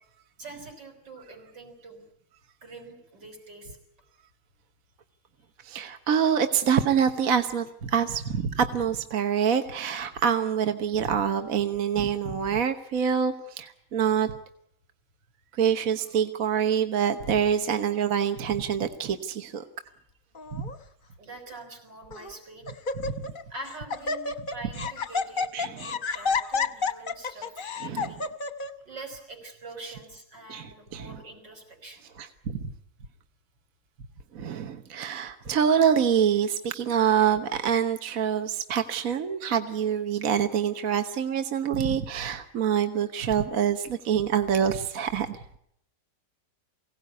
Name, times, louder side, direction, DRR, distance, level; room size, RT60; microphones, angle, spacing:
voice 1, 0.4-2.0 2.6-3.8 21.2-22.7 23.5-27.5 27.7-28.2 28.9-32.1, right 2 dB, 75° right, 4 dB, 5.9 m, -44 dB
voice 2, 5.6-14.3 15.5-19.6 20.5-20.6 23.0-23.1 25.5-25.9 27.8-28.1 30.5-31.2 32.2-32.7 34.3-45.4, right 8 dB, 55° right, 7 dB, 1.5 m, -26 dB
Laughter, 20.3-20.8 21.5-21.6 22.1-22.4 22.7-23.4 23.7-28.7, left 4 dB, 35° left, 0.9 m, -30 dB
23.0 x 17.5 x 9.6 m, 0.73 s
omnidirectional pair, 1.9 m